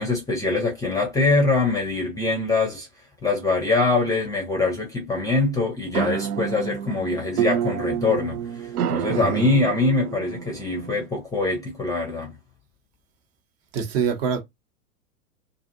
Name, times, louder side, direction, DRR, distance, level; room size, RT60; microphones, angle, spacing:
voice 1, 0.0-2.9 3.2-8.4 8.9-12.3, left 3 dB, 10° left, 0.6 m, -23 dB
sound 1, 5.9-11.1, right 9 dB, 75° right, 0.5 m, -29 dB
voice 2, 9.1-9.5 13.7-14.4, right 6 dB, 40° right, 0.9 m, -25 dB
2.5 x 2.4 x 2.6 m
figure-of-eight pair, 100°, 45 cm